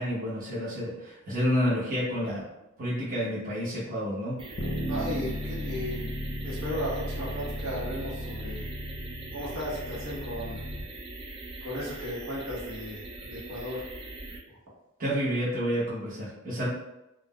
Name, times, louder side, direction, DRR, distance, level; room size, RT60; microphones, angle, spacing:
voice 1, 0.0-2.5 2.8-4.4 15.0-16.7, equal, 45° right, -8 dB, 0.9 m, -29 dB
sound 1, 4.4-14.4, right 2 dB, 25° right, 0.4 m, -42 dB
Bass guitar, 4.6-10.8, equal, 55° left, 0.6 m, -35 dB
voice 2, 4.9-6.1 6.4-8.7 9.3-10.6 11.6-13.9, equal, 70° right, -6 dB, 0.9 m, -35 dB
3.7 x 2.1 x 2.2 m, 0.92 s
head